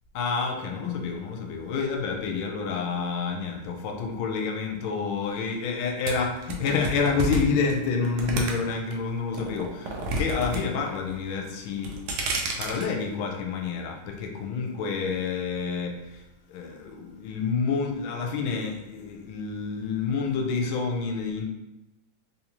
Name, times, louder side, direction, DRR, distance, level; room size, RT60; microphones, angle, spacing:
voice 1, 0.1-12.0 12.6-16.2 16.5-21.4, left 5 dB, 80° left, 2 dB, 1.4 m, -28 dB
sound 1, 6.1-8.9 9.3-10.6 10.9-11.3 11.7-12.8, right 2 dB, 85° right, 1.5 m, -30 dB
3.7 x 2.7 x 2.9 m, 0.96 s
omnidirectional pair, 2.2 m